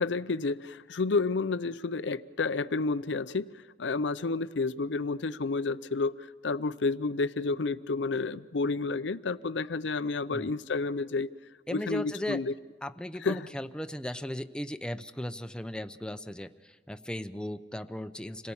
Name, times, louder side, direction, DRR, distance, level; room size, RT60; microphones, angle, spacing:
voice 1, 0.0-3.5 3.8-11.3 11.7-12.5 13.2-13.5, left 3 dB, 85° left, 14 dB, 0.6 m, -30 dB
voice 2, 11.7-12.4 12.8-18.5, left 1 dB, 5° left, 9 dB, 0.6 m, -37 dB
27.0 x 18.0 x 7.2 m, 1.3 s
head